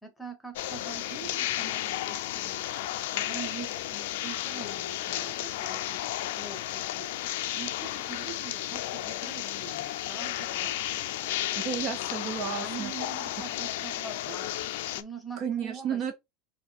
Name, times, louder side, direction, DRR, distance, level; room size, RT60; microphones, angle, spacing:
voice 1, 0.0-2.6 3.1-6.0 6.3-7.1 7.5-10.7 12.6-14.6 14.9-16.1, right 5 dB, 5° left, 1.0 m, -43 dB
sound 1, 0.6-15.0, left 14 dB, 80° left, 0.4 m, -33 dB
voice 2, 11.6-12.9 15.4-16.1, right 8 dB, 35° right, 0.6 m, -32 dB
4.3 x 2.7 x 4.1 m
supercardioid pair, 170°, 0 cm